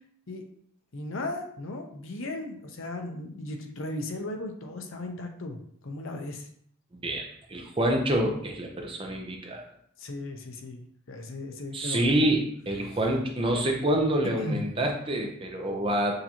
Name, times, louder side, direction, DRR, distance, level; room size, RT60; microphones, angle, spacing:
voice 1, 0.9-6.5 10.0-12.2 14.3-14.6, left 2 dB, 60° left, 4 dB, 0.7 m, -36 dB
voice 2, 6.9-9.6 11.7-16.1, right 1 dB, 25° right, 1 dB, 0.6 m, -27 dB
6.5 x 2.7 x 2.9 m, 0.65 s
head